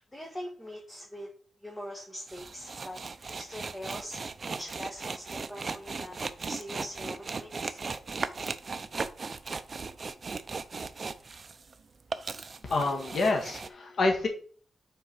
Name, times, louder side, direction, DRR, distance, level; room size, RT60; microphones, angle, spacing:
voice 1, 0.1-1.3 1.6-3.0 3.3-4.2 4.6-7.8, equal, 15° left, -1 dB, 1.4 m, -42 dB
sound 1, 2.3-11.7 12.0-13.7, right 4 dB, 35° right, 0.5 m, -37 dB
voice 2, 12.6-14.3, left 3 dB, 55° left, 2 dB, 1.6 m, -27 dB
5.7 x 4.6 x 5.8 m, 0.43 s
wide cardioid pair, 120°, 0 cm